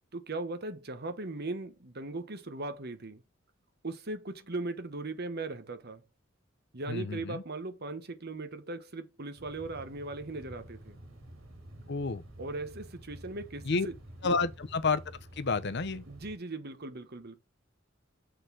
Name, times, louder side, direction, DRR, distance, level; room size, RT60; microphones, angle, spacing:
voice 1, 0.1-3.2 3.8-6.0 6.7-11.0 12.4-13.9 14.2-14.4 16.1-17.4, right 2 dB, 50° right, 1.3 m, -38 dB
voice 2, 6.9-7.4 11.9-12.2 13.6-13.9 14.2-15.0 15.3-16.0, left 4 dB, 55° left, 0.8 m, -30 dB
sound 1, 9.4-16.4, right 1 dB, 85° right, 2.9 m, -50 dB
6.5 x 4.0 x 6.2 m
head